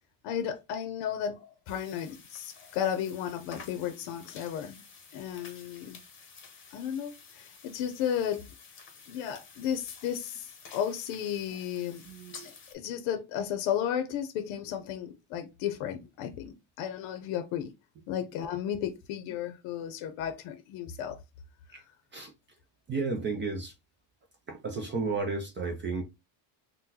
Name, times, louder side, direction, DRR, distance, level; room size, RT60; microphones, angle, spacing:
voice 1, 0.2-4.8 5.1-6.0 6.7-8.4 9.1-12.0 12.7-17.7 18.1-21.2, left 9 dB, 75° left, 0.7 m, -34 dB
sound 1, 1.7-12.7, left 5 dB, 25° left, 0.8 m, -51 dB
voice 2, 12.1-12.5 21.7-21.8 22.1-22.3 22.9-23.7 24.5-26.0, right 4 dB, 25° right, 0.3 m, -33 dB
3.8 x 2.2 x 2.7 m
cardioid pair, 140°, 49 cm